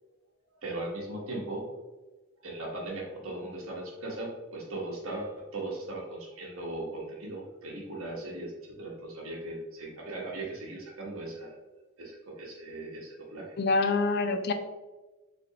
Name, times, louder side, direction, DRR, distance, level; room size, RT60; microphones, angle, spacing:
voice 1, 0.6-1.7 2.4-11.5 12.0-13.5, right 2 dB, 90° right, -2 dB, 1.1 m, -38 dB
voice 2, 13.6-14.5, left 3 dB, 50° left, 7 dB, 0.4 m, -26 dB
3.7 x 3.4 x 2.8 m, 1.1 s
head